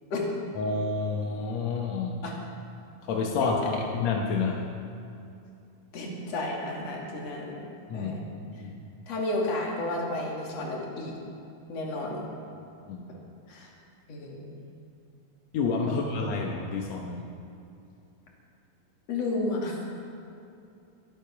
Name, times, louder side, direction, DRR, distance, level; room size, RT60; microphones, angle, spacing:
voice 1, 0.6-2.1 3.0-4.7 7.9-8.1 8.4-8.7 12.9-13.0 15.5-17.3, left 4 dB, 65° left, 0 dB, 1.8 m, -29 dB
voice 2, 5.9-7.6 7.9-8.2 9.1-11.2 11.7-12.3 13.5-13.7 14.1-14.6 15.9-16.0 19.1-20.0, left 2 dB, 45° left, -2 dB, 3.3 m, -32 dB
22.5 x 10.5 x 5.9 m, 2.6 s
omnidirectional pair, 4.4 m